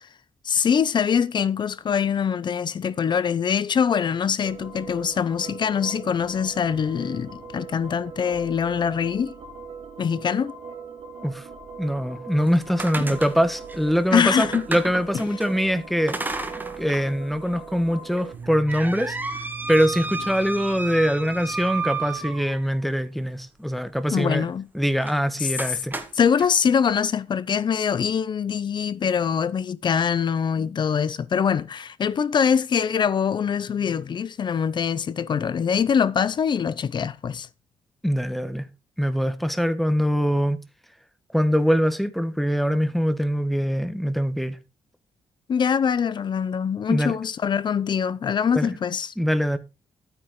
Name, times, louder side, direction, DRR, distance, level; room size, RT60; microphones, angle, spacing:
voice 1, 0.4-9.3 10.0-10.5 13.1-13.2 14.1-14.7 24.1-24.7 25.4-25.5 26.1-37.5 45.5-49.1, left 7 dB, 45° left, 0.8 m, -23 dB
sound 1, 4.4-22.4, right 5 dB, 75° right, 4.0 m, -40 dB
voice 2, 11.8-16.3 16.8-19.2 19.7-24.4 24.7-25.9 38.0-38.7 39.0-40.6 41.3-44.6 46.9-47.1 48.5-48.8 49.2-49.6, equal, ahead, 1.3 m, -23 dB
sound 2, 12.4-15.5 16.1-17.1 17.5-17.6 18.2-22.8 25.0-25.2 25.6-26.5, right 3 dB, 15° right, 1.7 m, -32 dB
12.0 x 9.2 x 3.8 m
cardioid pair, 110°, 10 cm